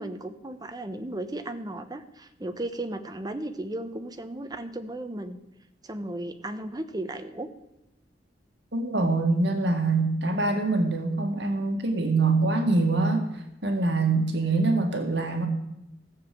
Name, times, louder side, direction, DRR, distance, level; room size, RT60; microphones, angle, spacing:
voice 1, 0.0-5.4 5.8-7.5, right 1 dB, 20° right, 8 dB, 1.0 m, -35 dB
voice 2, 8.7-13.2 13.6-15.5, right 3 dB, 70° right, 4 dB, 1.9 m, -24 dB
15.5 x 7.2 x 7.8 m, 0.87 s
head